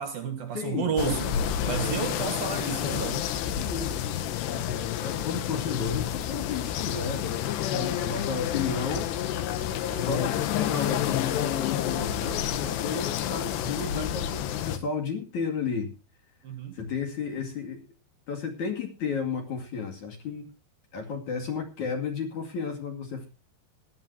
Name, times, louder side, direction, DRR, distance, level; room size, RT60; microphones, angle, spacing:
voice 1, 0.0-3.4 7.7-8.0 16.4-16.8, right 7 dB, 60° right, 2.9 m, -32 dB
voice 2, 0.5-0.9 3.5-7.5 7.8-9.1 9.6-15.9 16.7-17.8 18.3-20.5 20.9-23.3, left 5 dB, 50° left, 3.0 m, -33 dB
sound 1, 1.0-14.8, left 10 dB, 75° left, 3.1 m, -29 dB
19.5 x 12.0 x 2.8 m
omnidirectional pair, 5.3 m